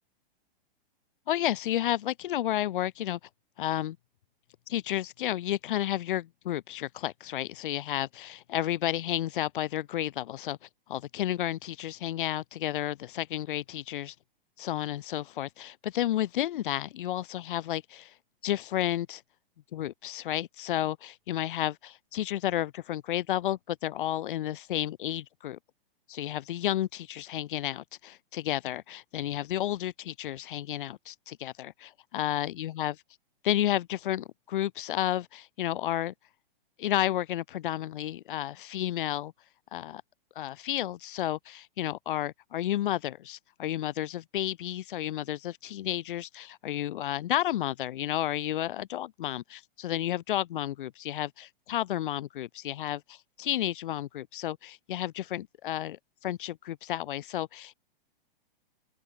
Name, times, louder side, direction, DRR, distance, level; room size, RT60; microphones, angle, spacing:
voice 1, 1.3-3.2 3.6-4.0 4.7-14.2 14.6-18.2 18.4-19.2 19.7-25.6 26.1-32.9 33.4-36.1 36.8-39.3 39.7-40.0 40.3-57.7, left 13 dB, 60° left, 2.8 m, -32 dB
open air
hypercardioid pair, 155°, 29 cm